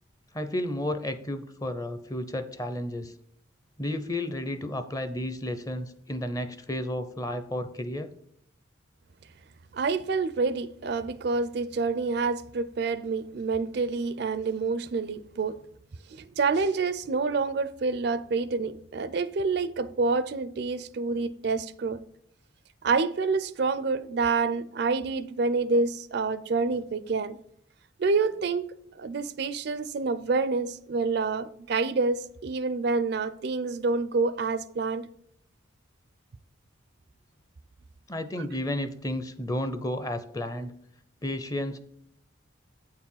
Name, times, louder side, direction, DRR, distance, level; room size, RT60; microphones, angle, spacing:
voice 1, 0.3-3.1 3.8-8.1 38.1-40.7 41.2-41.8, left 1 dB, 15° left, 0.5 m, -32 dB
voice 2, 9.7-15.6 16.1-22.0 22.8-27.4 28.0-35.1, right 4 dB, 55° right, 0.4 m, -27 dB
8.6 x 4.7 x 5.5 m
head